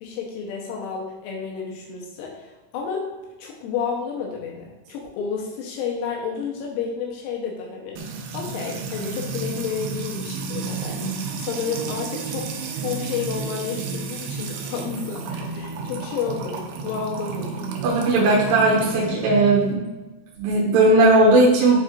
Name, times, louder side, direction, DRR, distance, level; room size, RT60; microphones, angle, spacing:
voice 1, 0.0-3.1 3.4-8.0 8.3-11.0 11.4-17.7, left 6 dB, 85° left, -2 dB, 3.2 m, -31 dB
Music / Water tap faucet / Trickle dribble, 8.0-19.7, right 4 dB, 90° right, 2.3 m, -31 dB
voice 2, 17.8-19.8 20.4-21.8, right 2 dB, 70° right, -6 dB, 3.1 m, -17 dB
11.0 x 3.7 x 2.4 m, 1.2 s
omnidirectional pair, 5.7 m